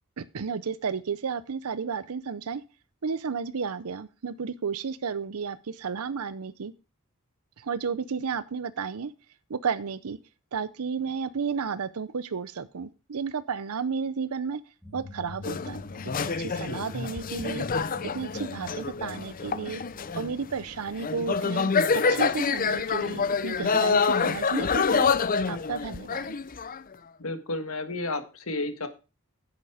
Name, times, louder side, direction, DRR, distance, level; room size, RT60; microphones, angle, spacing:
voice 1, 0.2-2.6 3.0-6.7 7.6-9.1 9.5-10.2 10.5-14.6 14.9-15.8 16.2-17.7 18.0-19.8 20.2-25.1 25.5-26.3, right 5 dB, 85° right, 14 dB, 0.6 m, -32 dB
sound 1, 14.8-22.1, left 1 dB, ahead, 2.6 m, -46 dB
sound 2, 15.4-20.4 20.9-26.9, left 5 dB, 40° left, 0.6 m, -27 dB
voice 2, 27.2-28.9, left 2 dB, 75° left, 9 dB, 1.7 m, -32 dB
10.5 x 8.2 x 4.9 m, 0.31 s
head